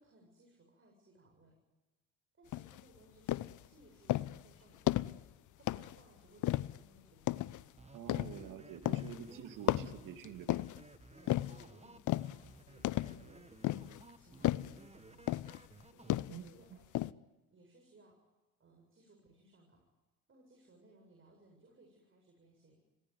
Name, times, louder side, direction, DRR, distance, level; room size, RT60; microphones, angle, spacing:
voice 1, 0.0-1.6 2.3-7.7 8.3-9.3 11.1-13.9 14.1-15.4 15.9-19.9 20.3-22.8, right 1 dB, 30° right, 1 dB, 7.9 m, -64 dB
sound 1, 2.5-2.8 3.3-3.6 4.1-4.4 4.9-5.2 5.7-6.0 6.4-6.8 7.3-7.6 8.1-8.5 8.9-9.2 9.7-10.8 11.3-11.6 12.1-12.4 12.8-13.3 13.6-14.0 14.4-14.8 15.3-15.6 16.1-16.5 16.9-17.1, left 15 dB, 50° left, 0.8 m, -34 dB
sound 2, 7.8-16.2, right 3 dB, 15° right, 1.7 m, -57 dB
voice 2, 7.9-10.6 16.3-16.6, right 9 dB, 55° right, 7 dB, 2.8 m, -48 dB
26.5 x 18.0 x 9.6 m, 1.1 s
hypercardioid pair, 75°, 38 cm